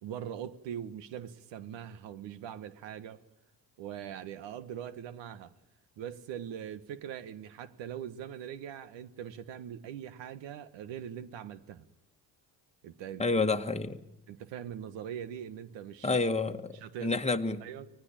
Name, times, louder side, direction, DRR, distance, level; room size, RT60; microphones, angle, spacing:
voice 1, 0.0-3.2 3.8-5.5 6.0-11.9 12.8-13.2 14.3-16.1 16.7-17.2 17.6-17.9, right 9 dB, 75° right, 1.5 m, -42 dB
voice 2, 13.2-14.0 16.0-16.8 17.0-17.6, left 3 dB, 15° left, 1.7 m, -29 dB
24.5 x 19.0 x 9.0 m
supercardioid pair, 60°, 44 cm